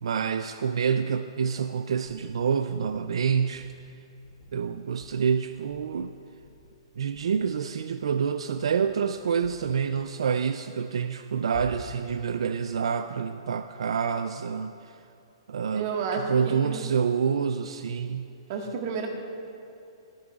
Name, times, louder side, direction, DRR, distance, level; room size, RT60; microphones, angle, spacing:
voice 1, 0.0-3.7 4.5-6.1 7.0-15.0 15.5-18.3, right 6 dB, 85° right, 9 dB, 0.4 m, -27 dB
sound 1, 2.0-2.4 2.8-3.1 3.5-3.8 4.2-4.7 5.0-5.3 5.7-6.1 6.4-6.8 7.1-7.4 7.9-8.3 8.6-9.1 9.4-9.8 11.5-12.1, left 2 dB, 50° left, 2.8 m, -47 dB
voice 2, 15.7-16.8 18.5-19.1, right 5 dB, 45° right, 1 dB, 1.6 m, -31 dB
23.0 x 8.6 x 2.4 m, 2.7 s
hypercardioid pair, 155°, 3 cm